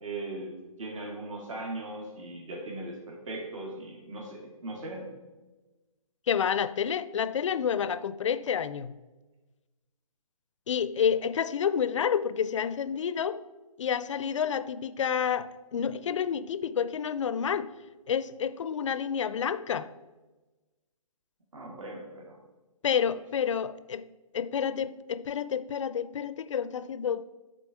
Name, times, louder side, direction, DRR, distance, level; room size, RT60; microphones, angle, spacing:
voice 1, 0.0-0.5 0.8-5.0 21.5-22.4, right 2 dB, 60° right, 1.8 m, -39 dB
voice 2, 6.3-8.9 10.7-13.4 13.8-17.7 18.1-19.9 22.8-24.0 24.3-27.2, left 7 dB, 55° left, 0.4 m, -29 dB
9.2 x 4.0 x 4.5 m
figure-of-eight pair, 140°, 19 cm